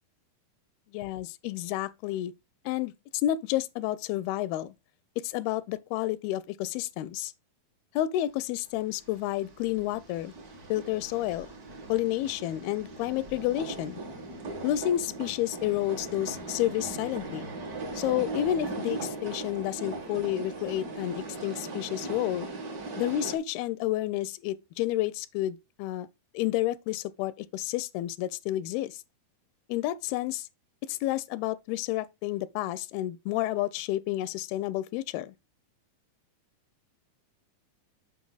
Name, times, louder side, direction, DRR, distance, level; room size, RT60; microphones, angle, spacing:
voice 1, 0.9-2.3 2.7-4.7 5.2-7.3 8.0-10.3 10.7-11.5 11.9-14.0 14.6-17.4 17.9-22.5 23.0-26.1 26.3-29.0 29.7-30.5 30.9-35.3, left 14 dB, 85° left, 2.5 m, -30 dB
sound 1, 9.0-23.4, right 3 dB, 65° right, 0.9 m, -39 dB
7.4 x 5.8 x 3.9 m
omnidirectional pair, 4.3 m